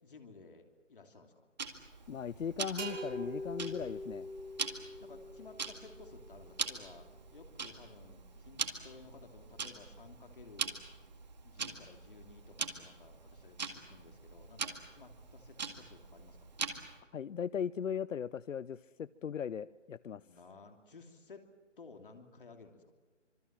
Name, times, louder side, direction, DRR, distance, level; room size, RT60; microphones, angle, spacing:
voice 1, 0.0-1.5 5.0-10.8 11.4-16.5 20.2-21.5 21.8-22.9, left 4 dB, 45° left, 4 dB, 3.1 m, -56 dB
Tick-tock, 1.6-17.0, right 5 dB, 35° right, 2.0 m, -43 dB
voice 2, 2.1-4.3 17.1-20.2, left 8 dB, 85° left, 18 dB, 0.7 m, -38 dB
sound 1, 2.8-6.4, equal, 80° right, 7.3 m, -43 dB
26.0 x 23.5 x 7.5 m, 1.3 s
hypercardioid pair, 175°, 37 cm